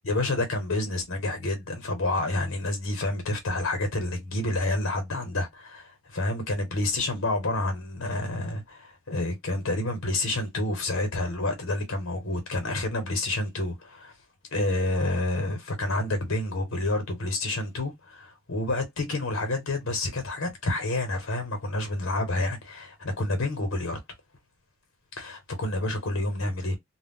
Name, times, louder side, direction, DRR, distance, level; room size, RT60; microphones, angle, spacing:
voice 1, 0.1-14.1 14.5-24.0 25.2-26.8, left 2 dB, 85° left, 0.9 m, -29 dB
2.3 x 2.1 x 3.6 m
head